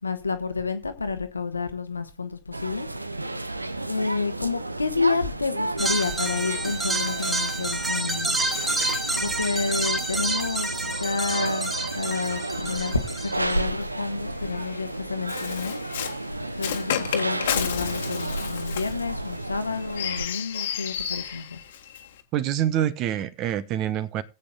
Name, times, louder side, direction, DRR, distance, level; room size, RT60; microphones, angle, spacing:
voice 1, 0.0-2.9 3.9-8.4 9.2-15.8 16.6-21.6, left 4 dB, 80° left, 1.2 m, -29 dB
sound 1, 2.5-20.2, right 2 dB, 85° right, 0.6 m, -32 dB
sound 2, 5.8-13.6, right 2 dB, 10° right, 1.6 m, -29 dB
Bird, 5.9-12.5 13.4-22.2, left 9 dB, 60° left, 1.5 m, -35 dB
voice 2, 22.3-24.2, right 11 dB, 40° right, 1.1 m, -26 dB
20.5 x 8.3 x 2.3 m
figure-of-eight pair, 90°, 0 cm